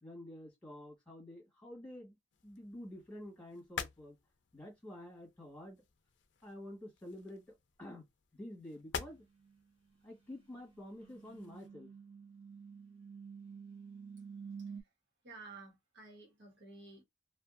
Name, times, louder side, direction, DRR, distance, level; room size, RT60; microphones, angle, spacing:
voice 1, 0.0-2.1 2.4-4.2 4.5-5.8 6.4-8.1 8.3-9.2 10.0-11.9, left 1 dB, 5° left, 1.4 m, -49 dB
sound 1, 2.3-11.7, left 6 dB, 70° left, 0.5 m, -49 dB
sound 2, 9.4-9.6 10.5-14.8, right 6 dB, 30° right, 0.9 m, -50 dB
voice 2, 15.2-17.0, right 3 dB, 65° right, 1.3 m, -52 dB
2.5 x 2.4 x 2.5 m
head